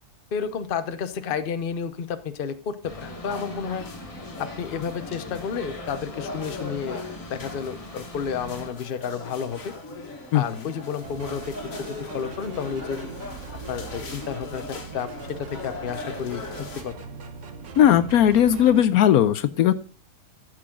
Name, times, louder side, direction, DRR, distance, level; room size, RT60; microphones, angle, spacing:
voice 1, 0.3-3.9 4.4-7.0 7.3-9.7 10.3-13.0 13.7-17.0, left 7 dB, 45° left, 10 dB, 0.9 m, -31 dB
sound 1, 2.8-8.7, equal, 25° left, 1.4 m, -41 dB
sound 2, 3.0-16.8, left 3 dB, 60° left, 2.0 m, -39 dB
sound 3, 11.0-18.8, right 6 dB, 55° right, 1.3 m, -41 dB
voice 2, 17.8-19.7, left 10 dB, 75° left, 13 dB, 1.1 m, -17 dB
13.0 x 6.3 x 3.7 m, 0.38 s
omnidirectional pair, 1.6 m